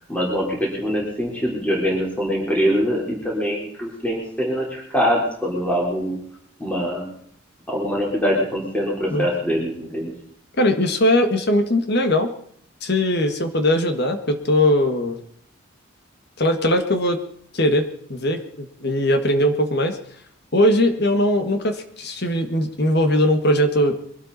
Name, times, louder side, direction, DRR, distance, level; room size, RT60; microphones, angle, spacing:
voice 1, 0.1-6.2 6.6-7.1 7.7-10.1, equal, 5° left, -3 dB, 4.0 m, -23 dB
voice 2, 10.6-12.3 12.8-15.2 16.4-17.2 17.5-20.0 20.5-23.9, left 1 dB, 55° left, 7 dB, 1.7 m, -20 dB
23.0 x 12.5 x 4.2 m, 0.64 s
head